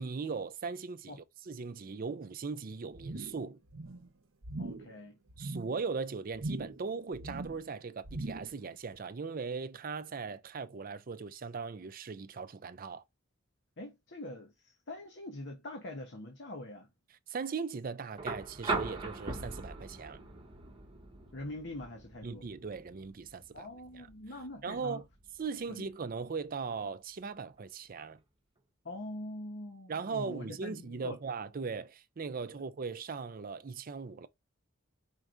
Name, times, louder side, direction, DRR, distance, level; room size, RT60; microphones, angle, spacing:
voice 1, 0.0-3.6 5.4-13.0 17.3-20.2 22.2-23.7 23.9-24.1 24.6-25.0 25.4-28.2 29.9-34.3, right 5 dB, 45° right, 0.5 m, -39 dB
sound 1, 3.0-3.5 3.7-4.1 4.4-4.9 5.3-5.7 6.3-6.9 7.1-7.7 8.0-8.6 8.9-9.0, right 2 dB, 80° right, 0.8 m, -40 dB
voice 2, 4.6-5.2 13.8-16.9 21.3-22.5 23.5-25.0 25.7-25.9 28.8-31.2, left 1 dB, 60° left, 1.0 m, -44 dB
sound 2, 18.2-26.2 27.6-27.7, right 3 dB, 25° right, 1.2 m, -41 dB
4.6 x 4.5 x 2.6 m
head